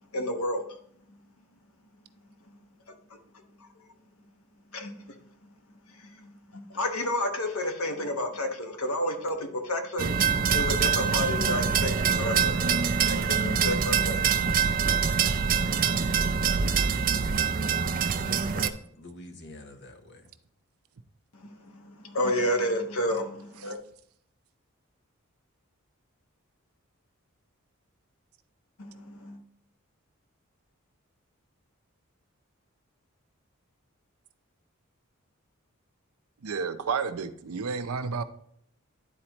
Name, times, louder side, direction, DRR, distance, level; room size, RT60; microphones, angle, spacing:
voice 1, 0.1-0.6 4.7-5.1 6.1-6.3 6.5-12.7 13.0-14.3 21.4-23.8 28.8-29.4, left 1 dB, 85° left, 1.1 m, -31 dB
sound 1, 10.0-18.7, right 6 dB, 40° right, 0.4 m, -25 dB
voice 2, 18.2-20.3, left 1 dB, 50° left, 0.9 m, -44 dB
voice 3, 36.4-38.2, right 5 dB, 85° right, 0.6 m, -31 dB
11.0 x 4.3 x 3.0 m
head